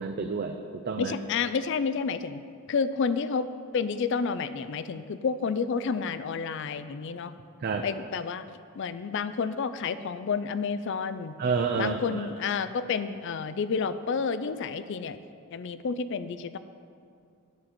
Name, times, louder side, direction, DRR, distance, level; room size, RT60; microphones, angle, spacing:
voice 1, 0.0-1.1 7.6-7.9 11.4-12.3, right 5 dB, 45° right, 5 dB, 0.4 m, -29 dB
voice 2, 1.0-2.4 2.7-3.5 3.7-7.3 7.8-8.5 8.8-11.4 11.8-15.2 15.5-16.6, left 5 dB, 55° left, 13 dB, 0.4 m, -30 dB
10.5 x 4.2 x 7.6 m, 2.3 s
head